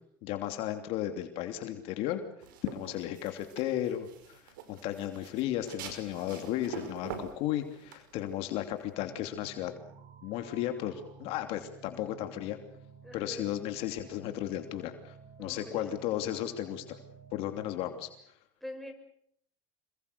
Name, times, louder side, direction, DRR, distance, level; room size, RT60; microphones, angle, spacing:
voice 1, 0.2-2.2 2.6-9.7 10.2-12.6 13.1-17.0 17.3-18.1, left 12 dB, 65° left, 7 dB, 2.9 m, -34 dB
sound 1, 2.4-8.9, right 6 dB, 90° right, 5.1 m, -45 dB
sound 2, 9.0-18.2, right 6 dB, 45° right, 6.7 m, -53 dB
voice 2, 13.0-13.5 15.4-16.0 18.6-18.9, left 1 dB, ahead, 4 dB, 6.0 m, -44 dB
27.5 x 22.5 x 6.9 m, 0.68 s
supercardioid pair, 100°, 11 cm